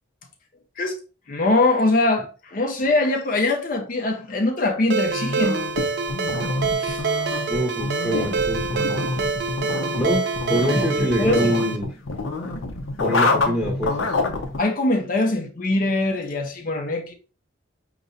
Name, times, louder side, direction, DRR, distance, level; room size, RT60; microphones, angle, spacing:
voice 1, 1.3-5.6 6.8-7.0 11.2-11.5 14.6-17.1, left 2 dB, 45° left, 0.5 m, -22 dB
Ringtone, 4.9-11.8, right 4 dB, 55° right, 0.4 m, -26 dB
sound 1, 5.0-14.6, left 3 dB, 85° left, 0.7 m, -27 dB
voice 2, 7.5-9.2 10.0-10.2 10.5-11.9 13.0-14.2, equal, ahead, 0.8 m, -25 dB
5.2 x 2.9 x 2.6 m
head